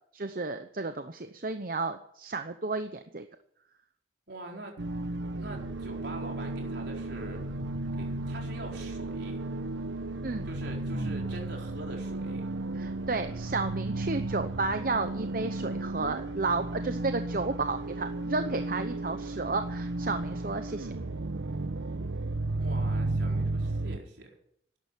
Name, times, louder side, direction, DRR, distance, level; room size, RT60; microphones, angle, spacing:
voice 1, 0.1-3.3 10.2-10.5 12.7-20.9, right 3 dB, 50° right, 8 dB, 0.8 m, -32 dB
voice 2, 4.3-4.7 5.3-7.5 8.0-9.4 10.4-12.5 22.6-24.3, right 1 dB, 65° right, 0 dB, 4.5 m, -43 dB
sound 1, 4.8-24.0, right 2 dB, 85° right, 1.0 m, -34 dB
12.5 x 11.0 x 9.9 m, 0.73 s
head